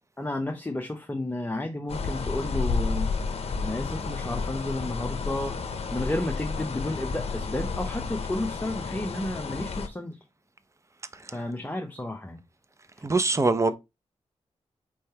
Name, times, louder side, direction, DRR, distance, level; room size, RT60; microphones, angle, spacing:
voice 1, 0.2-3.1 3.6-5.6 5.9-10.2 11.3-12.4 13.0-13.1, left 1 dB, 15° left, 0.8 m, -32 dB
sound 1, 1.9-9.9, left 4 dB, 60° left, 0.7 m, -31 dB
voice 2, 13.0-13.7, right 3 dB, 25° right, 0.6 m, -22 dB
4.6 x 3.2 x 2.8 m
cardioid pair, 55°, 12 cm